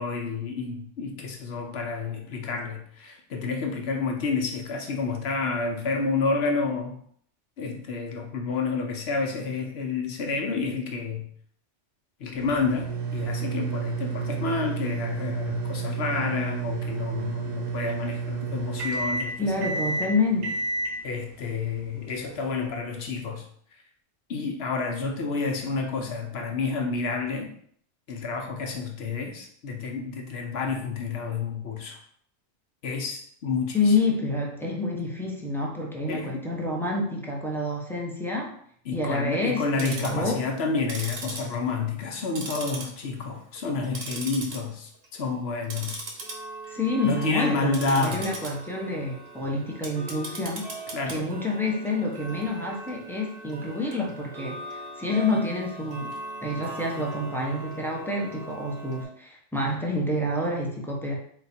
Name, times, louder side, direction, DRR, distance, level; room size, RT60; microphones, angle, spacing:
voice 1, 0.0-7.0 7.6-11.3 12.2-19.7 21.0-23.5 24.3-27.5 28.1-32.0 32.8-34.0 36.1-36.5 38.9-46.1 46.7-46.8 47.0-48.3 50.9-51.3, left 4 dB, 65° left, 2 dB, 0.8 m, -29 dB
sound 1, 12.3-22.7, right 4 dB, 80° right, 1.2 m, -31 dB
voice 2, 19.4-20.6 33.7-38.6 38.9-40.5 46.7-50.7 51.1-56.1 56.4-61.1, left 2 dB, 5° left, -2 dB, 0.5 m, -28 dB
Tick-tock, 39.6-40.2 40.8-42.1 42.4-43.2 43.6-44.6 44.9-45.2 45.6-59.0, right 2 dB, 60° right, 1.0 m, -39 dB
4.1 x 2.3 x 4.1 m, 0.62 s
omnidirectional pair, 1.2 m